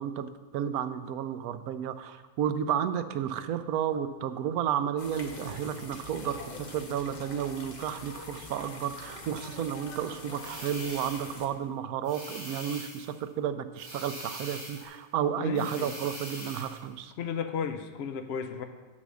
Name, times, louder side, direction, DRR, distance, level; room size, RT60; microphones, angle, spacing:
voice 1, 0.0-17.1, right 9 dB, 85° right, 11 dB, 1.1 m, -32 dB
sound 1, 5.0-11.5, left 2 dB, 35° left, 0.9 m, -44 dB
sound 2, 5.3-5.6 6.2-6.5 7.2-7.4 8.0-8.4 9.0-9.2 11.2-11.4 12.3-12.5 13.8-13.9 14.8-14.9, equal, 60° right, 2.5 m, -51 dB
sound 3, 10.3-11.4 12.0-13.2 13.8-14.9 15.5-16.8, right 1 dB, 30° right, 2.9 m, -43 dB
voice 2, 15.4-15.9 17.2-18.6, left 7 dB, 60° left, 7 dB, 0.7 m, -34 dB
8.1 x 5.8 x 6.2 m, 1.3 s
omnidirectional pair, 1.5 m